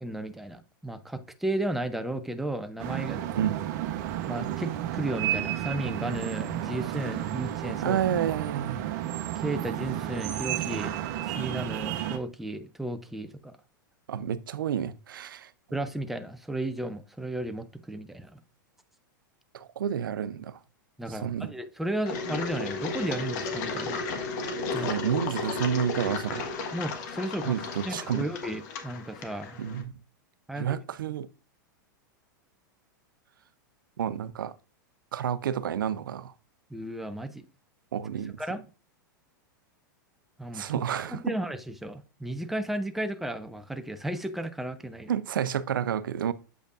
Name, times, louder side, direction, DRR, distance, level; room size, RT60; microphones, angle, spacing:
voice 1, 0.0-3.2 4.3-8.0 9.4-10.9 11.2-13.6 15.7-18.4 21.0-24.0 24.7-25.0 26.7-27.6 27.8-29.6 30.5-30.8 36.7-37.5 38.4-38.6 40.4-40.6 41.1-45.1, right 1 dB, ahead, 0.7 m, -34 dB
sound 1, 2.8-12.2, right 12 dB, 55° right, 0.9 m, -32 dB
voice 2, 7.8-8.8 14.1-15.5 19.5-20.6 21.1-21.5 24.8-26.4 27.5-28.3 29.6-29.9 30.5-31.3 34.0-34.5 35.1-36.3 37.9-38.4 40.5-41.3 45.1-46.3, right 9 dB, 80° right, 0.6 m, -30 dB
Engine, 22.1-29.8, left 4 dB, 55° left, 1.5 m, -34 dB
8.1 x 5.1 x 2.5 m
hypercardioid pair, 110°, 11 cm